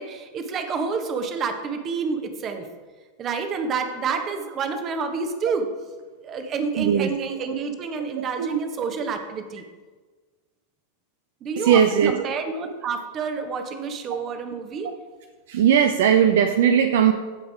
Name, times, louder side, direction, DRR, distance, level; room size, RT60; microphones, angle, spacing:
voice 1, 0.0-2.7 3.2-5.7 6.2-9.6 11.4-14.9, right 5 dB, 30° right, 7 dB, 1.2 m, -28 dB
voice 2, 6.8-7.1 8.2-8.6 11.6-12.1 15.5-17.1, right 8 dB, 55° right, 7 dB, 0.5 m, -18 dB
15.0 x 5.3 x 4.7 m, 1.4 s
figure-of-eight pair, 90°, 0 cm